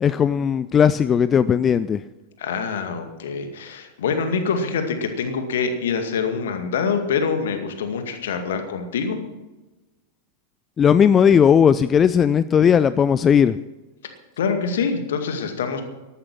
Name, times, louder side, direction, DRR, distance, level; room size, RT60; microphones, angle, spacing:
voice 1, 0.0-2.0 10.8-13.6, left 8 dB, 25° left, 15 dB, 0.4 m, -17 dB
voice 2, 2.4-9.2 14.4-15.8, left 5 dB, 60° left, 6 dB, 2.1 m, -25 dB
13.5 x 12.5 x 6.0 m, 1.1 s
figure-of-eight pair, 90°, 0 cm